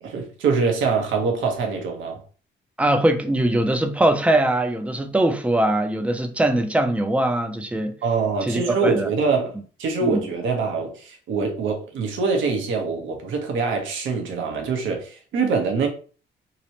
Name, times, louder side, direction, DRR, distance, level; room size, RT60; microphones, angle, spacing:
voice 1, 0.0-2.2 8.0-9.5 9.8-15.9, right 4 dB, 75° right, 0.8 m, -24 dB
voice 2, 2.8-7.9 8.4-9.1 10.0-10.3, right 1 dB, 5° right, 0.4 m, -21 dB
2.9 x 2.0 x 2.8 m
cardioid pair, 90°, 20 cm